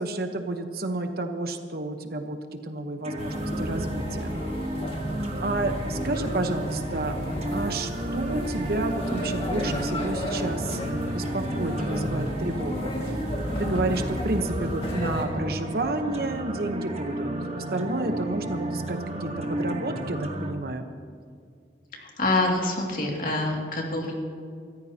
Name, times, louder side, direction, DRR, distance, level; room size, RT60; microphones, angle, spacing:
voice 1, 0.0-4.4 5.4-7.1 7.5-12.9 13.6-17.3 17.5-20.8, right 2 dB, 55° right, 6 dB, 1.1 m, -30 dB
sound 1, 3.0-20.5, right 1 dB, 35° right, 1.2 m, -33 dB
sound 2, 3.2-15.3, equal, 30° left, 2.0 m, -33 dB
voice 2, 21.9-24.1, left 2 dB, 45° left, -1 dB, 2.6 m, -26 dB
26.5 x 14.0 x 2.9 m, 2.2 s
head